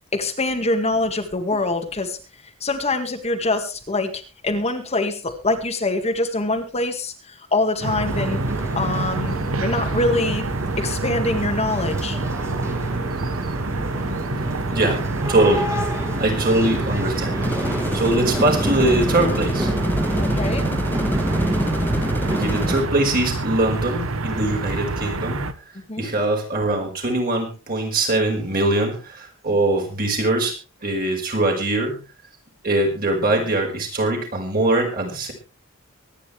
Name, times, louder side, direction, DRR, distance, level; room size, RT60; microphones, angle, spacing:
voice 1, 0.1-2.2 2.4-8.4 8.7-10.4 10.8-12.2 20.2-20.7 25.9-26.1, left 2 dB, 30° left, 4 dB, 1.9 m, -24 dB
sound 1, 7.8-25.5, right 3 dB, 70° right, 1.1 m, -27 dB
sound 2, 8.1-22.8, equal, 15° right, 2.5 m, -28 dB
voice 2, 14.7-15.7 16.2-17.5 17.9-19.7 21.9-25.5 26.0-30.6 30.8-32.0 32.6-35.3, right 2 dB, 45° right, 2 dB, 5.1 m, -22 dB
sound 3, 17.4-22.8, left 1 dB, 10° left, 1.3 m, -32 dB
24.5 x 9.8 x 3.4 m, 0.32 s
head